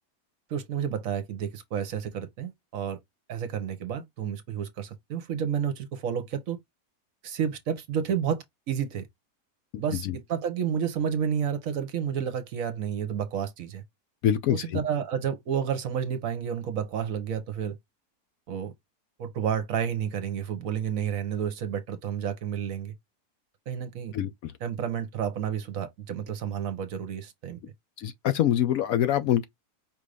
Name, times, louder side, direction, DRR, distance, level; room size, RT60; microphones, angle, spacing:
voice 1, 0.5-3.0 3.3-6.6 7.2-9.1 9.8-13.8 14.5-17.8 18.5-18.7 19.2-22.9 23.7-24.1 24.6-27.6, right 8 dB, 65° right, 1.1 m, -30 dB
voice 2, 9.7-10.2 14.2-14.8 24.1-24.5 28.0-29.4, left 11 dB, 70° left, 0.9 m, -25 dB
5.2 x 2.5 x 3.3 m
omnidirectional pair, 1.7 m